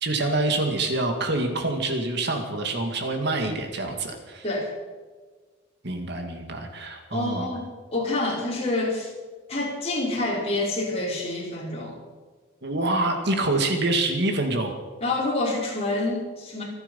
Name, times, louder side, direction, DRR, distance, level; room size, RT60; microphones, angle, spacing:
voice 1, 0.0-4.4 5.8-7.5 12.6-14.7, right 2 dB, 55° right, 4 dB, 2.3 m, -26 dB
voice 2, 7.1-9.1 9.5-12.0 15.0-16.6, left 2 dB, 30° left, -3 dB, 5.1 m, -27 dB
26.5 x 9.6 x 5.6 m, 1.4 s
head